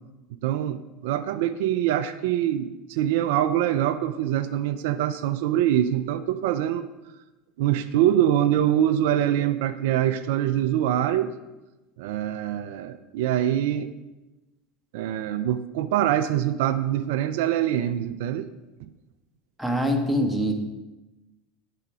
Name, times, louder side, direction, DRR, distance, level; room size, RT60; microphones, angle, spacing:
voice 1, 0.4-6.8 7.6-11.3 12.0-13.9 14.9-18.5 18.8-18.9, right 11 dB, 75° right, 11 dB, 0.3 m, -24 dB
voice 2, 19.6-20.5, equal, ahead, 3 dB, 1.1 m, -24 dB
5.7 x 4.9 x 4.7 m, 1.0 s
hypercardioid pair, 90°, 0 cm